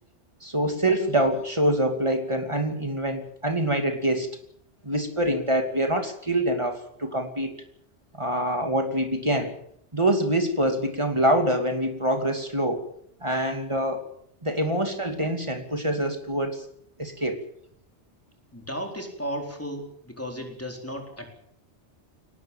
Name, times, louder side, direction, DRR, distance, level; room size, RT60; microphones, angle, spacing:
voice 1, 0.4-4.3 4.8-7.6 8.1-9.5 9.9-12.9 13.2-14.0 14.4-16.6 17.0-17.4, right 1 dB, 25° right, 5 dB, 2.7 m, -25 dB
voice 2, 18.5-21.4, equal, 10° left, 2 dB, 4.4 m, -35 dB
22.5 x 19.0 x 7.4 m, 0.69 s
omnidirectional pair, 1.2 m